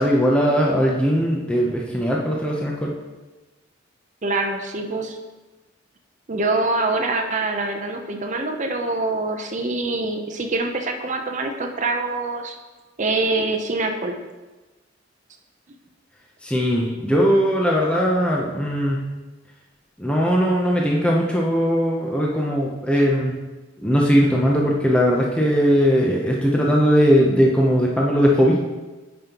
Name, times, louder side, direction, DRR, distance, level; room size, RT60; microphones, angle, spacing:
voice 1, 0.0-2.9 16.4-19.1 20.0-23.3 23.8-28.6, equal, 5° left, -3 dB, 0.6 m, -19 dB
voice 2, 4.2-5.1 6.3-12.6 13.0-14.2, right 2 dB, 40° right, 3 dB, 0.6 m, -24 dB
9.2 x 5.3 x 2.9 m, 1.2 s
head